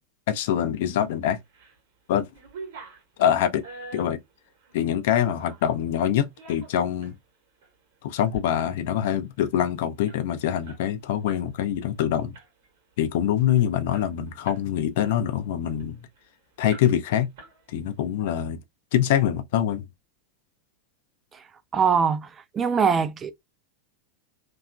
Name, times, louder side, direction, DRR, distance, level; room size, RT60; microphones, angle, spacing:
voice 1, 0.3-1.4 2.1-2.3 3.2-3.6 3.9-4.2 4.7-7.1 8.0-12.3 13.0-16.0 16.6-17.3 17.7-18.6 18.9-19.8, left 10 dB, 50° left, 0.4 m, -24 dB
sound 1, 1.2-1.8 2.1-5.7 6.2-7.2 7.6-7.7 8.1-8.5 8.8-8.9 9.1-11.5 11.8-12.0 12.3-12.8 13.2-13.3 13.6-14.7 15.1-16.2 16.7-17.1 17.4-18.0, right 4 dB, 50° right, 0.9 m, -45 dB
voice 2, 21.7-23.3, right 6 dB, 20° right, 0.3 m, -23 dB
2.8 x 2.3 x 2.3 m
figure-of-eight pair, 90°, 0 cm